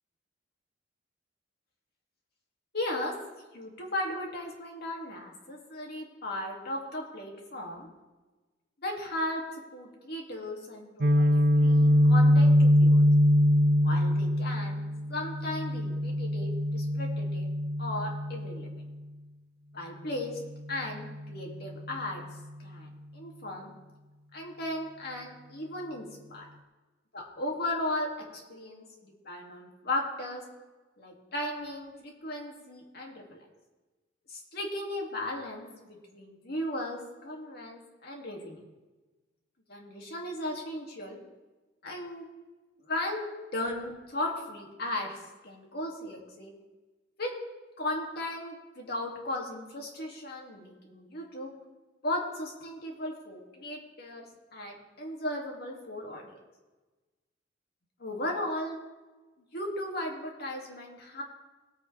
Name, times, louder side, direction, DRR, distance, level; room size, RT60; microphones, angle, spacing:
voice 1, 2.7-3.2 3.5-7.9 8.8-9.5 9.7-11.3 11.6-13.0 13.8-17.5 17.8-18.7 19.7-20.4 20.7-22.2 22.6-23.7 24.3-26.5 27.1-30.4 31.0-33.4 34.3-38.6 39.7-41.2 41.8-42.3 42.9-43.3 43.5-45.2 45.4-46.5 47.2-47.3 47.8-51.5 52.0-56.4 58.0-58.8 59.5-61.2, left 1 dB, 60° left, 0 dB, 2.5 m, -36 dB
Guitar, 11.0-18.9, equal, 55° right, 0.6 m, -23 dB
19.5 x 8.4 x 3.4 m, 1.2 s
head